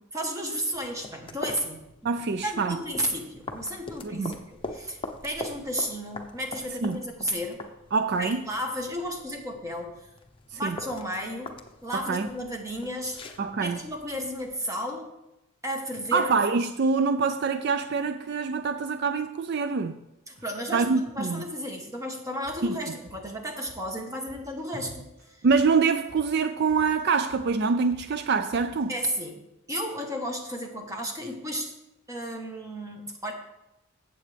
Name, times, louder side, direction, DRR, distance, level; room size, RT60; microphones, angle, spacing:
voice 1, 0.1-2.2 2.4-7.6 8.2-10.0 10.5-11.5 11.8-13.2 13.6-15.1 15.6-16.3 20.3-25.4 28.9-29.4 29.7-31.7 32.1-33.3, equal, 15° right, 1.3 m, -33 dB
sound 1, 0.7-14.5, left 2 dB, 25° left, 0.8 m, -43 dB
voice 2, 2.0-2.8 4.0-4.4 6.8-7.0 7.9-8.4 10.5-10.8 11.9-12.3 13.4-13.9 16.1-20.0 20.7-21.4 22.6-22.8 25.4-29.0, right 4 dB, 50° right, 0.4 m, -25 dB
sound 2, 22.3-29.1, left 1 dB, 70° right, 3.7 m, -53 dB
16.0 x 7.6 x 3.4 m
head